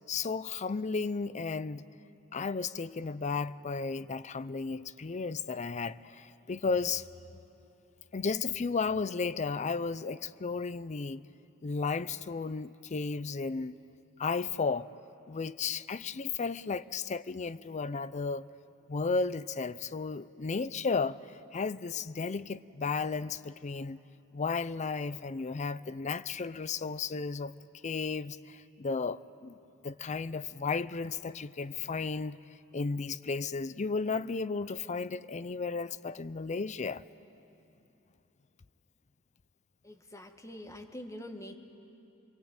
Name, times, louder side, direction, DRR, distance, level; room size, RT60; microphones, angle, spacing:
voice 1, 0.1-1.8 2.3-7.1 8.1-11.2 11.6-13.8 14.2-14.9 15.3-18.4 18.9-21.2 21.5-24.0 24.3-27.5 27.8-29.6 29.8-32.4 32.7-37.0, left 4 dB, 35° left, 0.5 m, -34 dB
voice 2, 39.8-41.6, left 1 dB, 15° left, 1.6 m, -45 dB
27.5 x 22.5 x 8.8 m
head